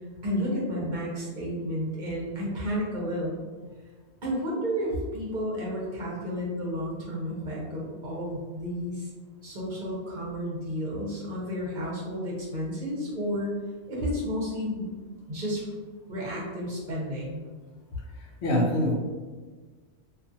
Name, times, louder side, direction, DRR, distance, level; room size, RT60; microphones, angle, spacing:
voice 1, 0.2-3.4 4.2-9.1 9.4-13.6 13.9-15.0 15.3-15.8 16.1-17.4, equal, 50° right, -6 dB, 0.8 m, -31 dB
voice 2, 17.9-19.0, left 1 dB, 75° left, 0 dB, 0.8 m, -26 dB
2.4 x 2.4 x 2.6 m, 1.4 s
omnidirectional pair, 1.1 m